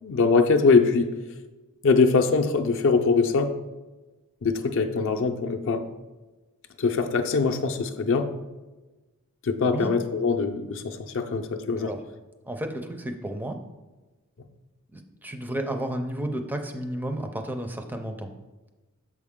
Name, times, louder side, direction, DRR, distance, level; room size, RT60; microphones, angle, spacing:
voice 1, 0.0-1.1 1.8-3.6 4.4-5.8 6.8-8.3 9.4-11.9, left 4 dB, 60° left, 6 dB, 0.5 m, -22 dB
voice 2, 12.4-13.6 14.9-18.3, right 1 dB, 10° right, 5 dB, 0.4 m, -32 dB
6.6 x 4.6 x 3.6 m, 1.2 s
head